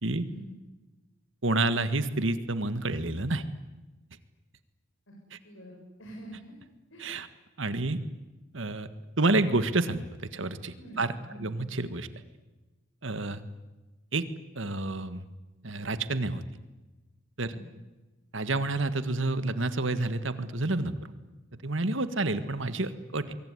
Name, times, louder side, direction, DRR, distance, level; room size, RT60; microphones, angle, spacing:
voice 1, 1.4-3.4 7.0-7.3 7.6-8.0 8.5-8.9 9.2-10.0 10.3-11.1 11.4-12.1 13.0-13.4 14.1-14.3 14.6-15.2 15.6-16.4 17.4-17.5 18.3-20.9 21.6-23.3, right 2 dB, 70° right, 12 dB, 1.8 m, -29 dB
voice 2, 5.4-6.5 6.9-7.0 10.7-11.5 17.5-17.7, right 1 dB, 75° left, -1 dB, 7.4 m, -46 dB
24.5 x 23.0 x 9.7 m, 1.1 s
head